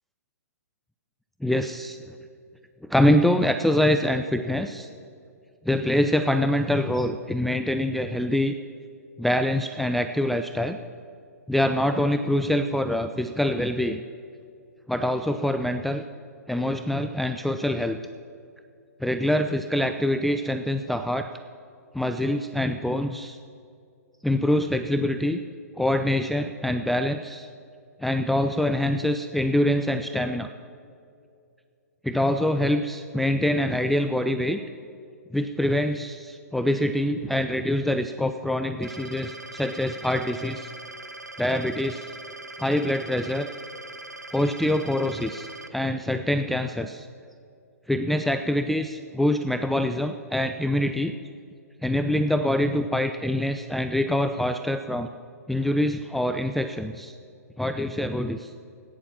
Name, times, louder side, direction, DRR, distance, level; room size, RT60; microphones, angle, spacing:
voice 1, 1.4-2.0 2.9-4.9 5.7-8.5 9.2-10.8 11.5-14.0 14.9-16.0 16.5-18.0 19.0-21.3 21.9-23.4 24.2-25.4 25.8-27.5 28.0-30.5 32.0-34.6 35.3-40.7 41.4-42.1 42.6-43.5 44.3-47.1 47.9-51.1 51.8-55.1 55.5-57.1 57.6-58.5, left 1 dB, ahead, 8 dB, 0.3 m, -25 dB
sound 1, 38.8-45.7, right 2 dB, 90° right, 1.0 m, -41 dB
16.0 x 10.0 x 5.9 m, 2.4 s
figure-of-eight pair, 120°, 9 cm